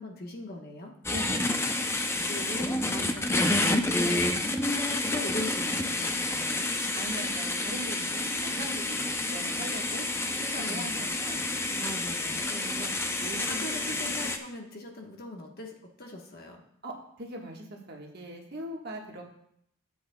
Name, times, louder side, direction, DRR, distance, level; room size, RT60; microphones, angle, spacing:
voice 1, 0.0-0.9 2.3-3.5 3.9-4.3 5.1-6.7 10.5-11.1 11.8-12.5 13.5-16.6, left 2 dB, 45° left, 1 dB, 1.2 m, -41 dB
sound 1, 1.0-14.4, left 2 dB, 10° left, 0.5 m, -29 dB
voice 2, 1.1-1.9 2.3-2.4 4.0-4.3 6.9-10.1 10.3-11.4 11.7-12.0 12.5-12.9 13.2-13.7 16.8-19.2, right 1 dB, 45° right, 0 dB, 1.4 m, -40 dB
14.0 x 7.8 x 2.3 m, 0.71 s
head